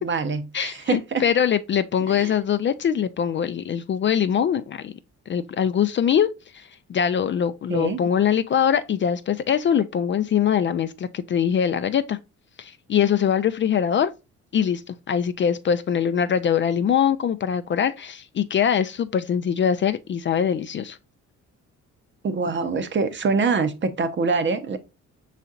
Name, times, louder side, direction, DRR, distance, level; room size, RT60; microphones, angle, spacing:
voice 1, 0.0-1.2 2.1-2.3 7.7-8.0 22.2-24.8, right 4 dB, 40° right, 0.8 m, -24 dB
voice 2, 0.5-4.9 5.3-6.3 6.5-12.2 12.6-14.1 14.5-21.0, left 8 dB, 40° left, 0.4 m, -23 dB
5.5 x 4.1 x 2.4 m
cardioid pair, 90°, 30 cm